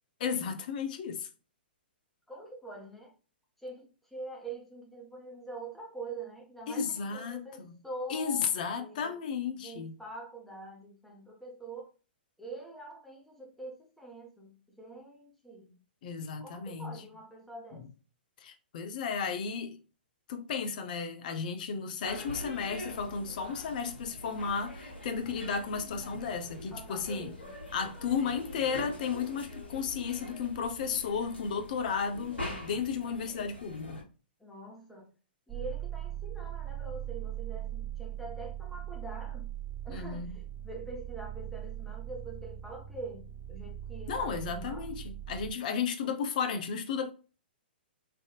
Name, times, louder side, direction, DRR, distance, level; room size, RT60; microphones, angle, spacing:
voice 1, 0.2-1.3 6.7-7.8 8.1-9.9 16.0-17.0 18.4-19.8 20.3-27.3 27.7-34.0 39.9-40.4 44.1-47.1, left 6 dB, 50° left, 0.6 m, -34 dB
voice 2, 2.3-3.1 3.6-8.5 8.8-9.2 9.6-11.9 12.4-15.8 16.4-17.9 26.7-27.6 34.4-35.1 35.5-39.5 39.8-45.0, right 2 dB, ahead, 1.0 m, -45 dB
sound 1, 22.0-34.0, left 1 dB, 80° left, 1.2 m, -43 dB
sound 2, 35.5-45.5, right 12 dB, 20° right, 0.3 m, -40 dB
3.3 x 2.6 x 2.5 m
figure-of-eight pair, 120°, 6 cm